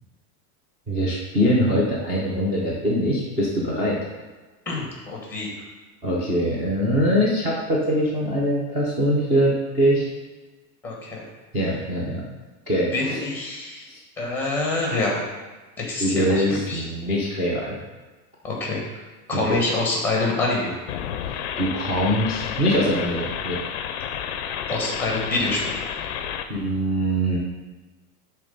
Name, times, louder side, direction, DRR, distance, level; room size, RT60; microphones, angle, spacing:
voice 1, 0.9-4.0 6.0-10.1 11.5-12.2 12.7-13.2 13.9-14.0 16.0-17.8 19.3-19.6 21.6-23.6 26.5-27.4, equal, 15° right, -7 dB, 0.6 m, -23 dB
voice 2, 4.7-5.5 10.8-11.2 12.9-13.8 14.2-15.3 15.8-16.8 18.4-18.8 19.3-20.7 24.7-25.7, left 2 dB, 5° left, -1 dB, 1.0 m, -26 dB
sound 1, 20.9-26.5, left 8 dB, 50° left, 0.5 m, -31 dB
7.1 x 3.3 x 5.3 m, 1.2 s
supercardioid pair, 170°, 47 cm